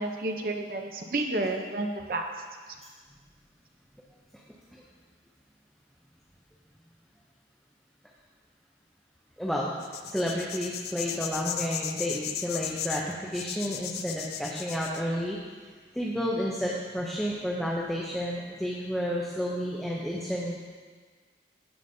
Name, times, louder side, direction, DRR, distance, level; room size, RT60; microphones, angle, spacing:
voice 1, 0.0-2.2, right 2 dB, 50° right, 3 dB, 0.7 m, -30 dB
voice 2, 9.4-9.7 10.1-15.4 15.9-20.7, equal, ahead, -4 dB, 0.6 m, -31 dB
sound 1, 9.8-15.0, left 10 dB, 60° left, 0.4 m, -35 dB
15.0 x 5.1 x 2.7 m, 1.6 s
head